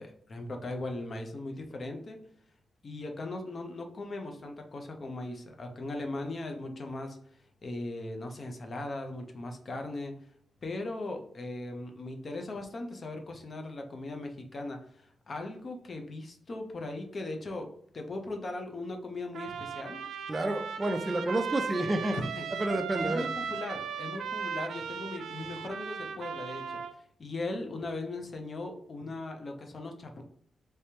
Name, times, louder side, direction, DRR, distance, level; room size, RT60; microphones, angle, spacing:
voice 1, 0.0-2.2 2.8-7.2 7.6-10.2 10.6-17.7 17.9-20.0 22.1-22.4 23.0-30.2, left 2 dB, 35° left, 4 dB, 0.6 m, -38 dB
Trumpet, 19.3-26.9, right 6 dB, 85° right, 0.4 m, -37 dB
voice 2, 20.3-22.2 22.5-23.3, right 1 dB, 20° right, 7 dB, 0.4 m, -30 dB
3.3 x 3.2 x 2.8 m, 0.65 s
wide cardioid pair, 150°, 0 cm